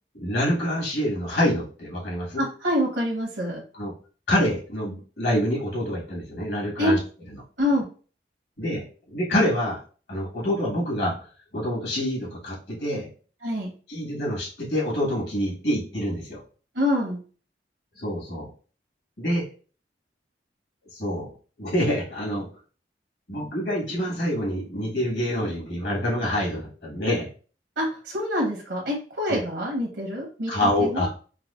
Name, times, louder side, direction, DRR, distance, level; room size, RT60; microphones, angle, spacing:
voice 1, 0.2-2.4 3.7-3.9 4.3-7.0 8.6-9.8 10.1-11.1 11.5-13.1 13.9-16.4 18.0-18.5 19.2-19.4 20.9-21.3 21.6-22.5 23.3-27.3 29.3-29.4 30.5-31.1, equal, 70° left, -3 dB, 1.7 m, -26 dB
voice 2, 2.4-3.6 6.8-6.9 7.6-7.9 13.4-13.7 16.7-17.2 27.8-31.0, left 1 dB, 80° right, -1 dB, 1.0 m, -26 dB
4.7 x 2.1 x 2.5 m, 0.39 s
head